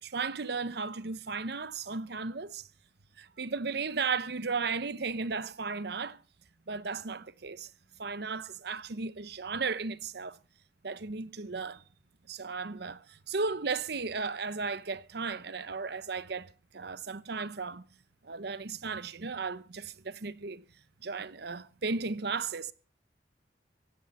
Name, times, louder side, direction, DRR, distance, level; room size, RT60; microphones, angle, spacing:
voice 1, 0.0-2.7 3.2-6.2 6.7-7.7 8.0-10.4 10.8-11.8 12.3-17.8 18.2-20.6 21.0-22.7, right 4 dB, 60° right, 0.9 m, -35 dB
16.5 x 16.0 x 4.3 m
head